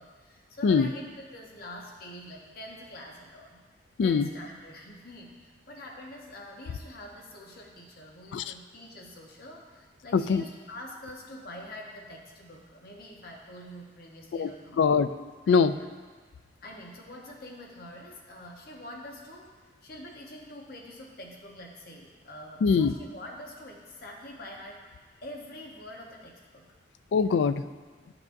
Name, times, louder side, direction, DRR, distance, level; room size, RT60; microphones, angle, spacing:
voice 1, 0.0-3.6 4.0-14.8 15.5-15.9 16.6-24.8 25.2-26.7, left 1 dB, 55° left, -1 dB, 1.1 m, -45 dB
voice 2, 4.0-4.3 8.3-8.5 10.1-10.4 14.3-14.5 14.8-15.7 22.6-22.9 27.1-27.6, left 5 dB, 75° left, 12 dB, 0.3 m, -23 dB
11.5 x 6.0 x 2.6 m, 1.4 s
head